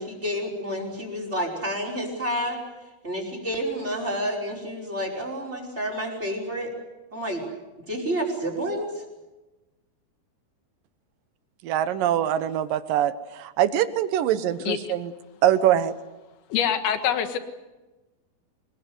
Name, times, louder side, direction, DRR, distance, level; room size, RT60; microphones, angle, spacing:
voice 1, 0.0-2.6 3.0-6.7 7.1-7.4 7.9-8.9, equal, 15° right, 3 dB, 5.4 m, -29 dB
voice 2, 11.6-15.1 15.4-15.9, right 11 dB, 70° right, 12 dB, 2.6 m, -23 dB
voice 3, 16.5-17.4, left 9 dB, 80° left, 8 dB, 3.6 m, -24 dB
25.5 x 22.0 x 7.9 m, 1.1 s
omnidirectional pair, 4.4 m